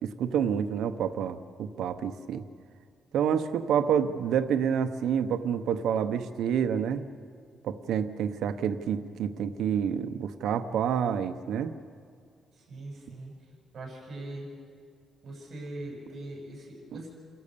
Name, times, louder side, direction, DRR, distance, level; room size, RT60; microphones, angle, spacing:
voice 1, 0.0-2.4 3.1-7.0 7.6-11.7, right 8 dB, 85° right, 9 dB, 0.8 m, -28 dB
voice 2, 12.5-13.3 13.7-14.5 15.2-17.1, right 2 dB, 35° right, -2 dB, 7.2 m, -41 dB
28.5 x 14.0 x 6.8 m, 2.2 s
cardioid pair, 170°, 0 cm